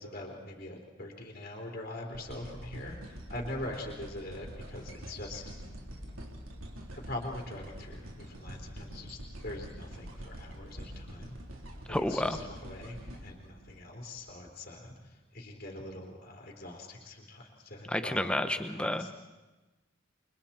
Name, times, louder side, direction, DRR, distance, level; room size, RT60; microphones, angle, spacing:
voice 1, 0.0-5.4 7.0-11.4 11.9-19.1, left 1 dB, 45° left, -1 dB, 3.7 m, -43 dB
sound 1, 2.1-14.3 14.9-15.0, equal, 85° right, 3.6 m, -45 dB
voice 2, 11.9-12.4 17.9-19.2, left 1 dB, 5° left, 9 dB, 0.9 m, -30 dB
29.5 x 24.5 x 4.4 m, 1.2 s
head